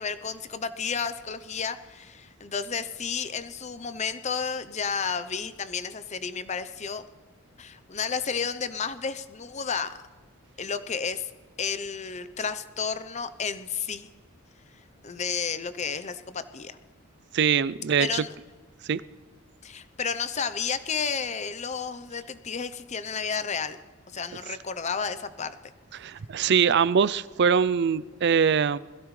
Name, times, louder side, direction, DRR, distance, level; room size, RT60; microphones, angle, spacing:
voice 1, 0.0-7.0 7.6-10.0 10.6-11.3 11.6-14.1 15.0-16.8 18.0-18.3 19.6-23.8 24.1-25.5, left 6 dB, 35° left, 12 dB, 0.7 m, -32 dB
voice 2, 17.3-18.1 18.8-19.0 25.9-28.8, right 6 dB, 55° right, 17 dB, 0.4 m, -23 dB
21.5 x 15.5 x 3.3 m, 1.4 s
head